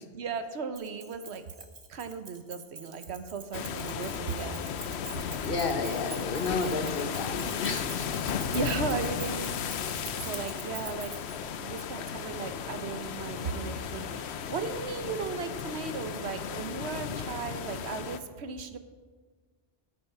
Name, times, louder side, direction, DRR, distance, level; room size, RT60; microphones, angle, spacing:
voice 1, 0.1-4.6 8.4-9.5 9.8-11.1 11.4-18.8, right 5 dB, 80° right, 9 dB, 1.1 m, -36 dB
Keys jangling, 0.7-11.4, right 3 dB, 40° right, 1.3 m, -45 dB
sound 1, 3.5-18.2, left 7 dB, 85° left, 0.9 m, -35 dB
voice 2, 5.4-8.3, left 3 dB, 60° left, 7 dB, 1.2 m, -32 dB
13.5 x 7.6 x 5.6 m, 1.4 s
omnidirectional pair, 1.1 m